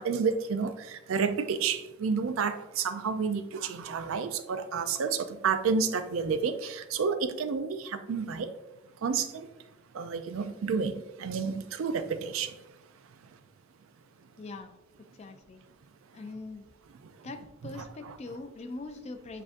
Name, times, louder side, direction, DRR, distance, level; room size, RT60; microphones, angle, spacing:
voice 1, 0.0-8.5 9.0-9.5 9.9-12.8 17.0-17.3 17.8-18.1, right 5 dB, 80° right, 10 dB, 0.4 m, -30 dB
voice 2, 14.4-14.8 15.2-15.6 16.1-16.6 17.2-19.4, left 3 dB, 30° left, 7 dB, 0.3 m, -42 dB
7.3 x 2.6 x 2.5 m, 0.97 s
head